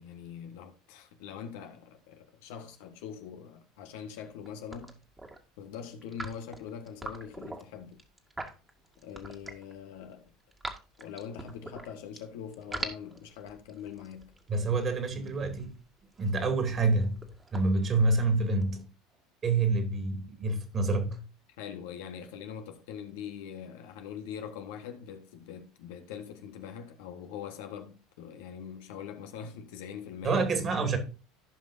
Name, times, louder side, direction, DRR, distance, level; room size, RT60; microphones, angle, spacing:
voice 1, 0.0-5.0 5.6-8.0 9.0-10.3 11.0-14.3 21.6-30.4, left 8 dB, 70° left, 1.4 m, -43 dB
sound 1, 4.3-5.4 6.0-9.7 10.1-12.2 12.5-18.6, right 2 dB, 15° right, 2.0 m, -43 dB
voice 2, 14.5-15.7 16.2-18.8 19.4-21.2 30.2-31.0, right 3 dB, 35° right, 2.6 m, -27 dB
15.5 x 5.4 x 2.7 m
hypercardioid pair, 75°, 0 cm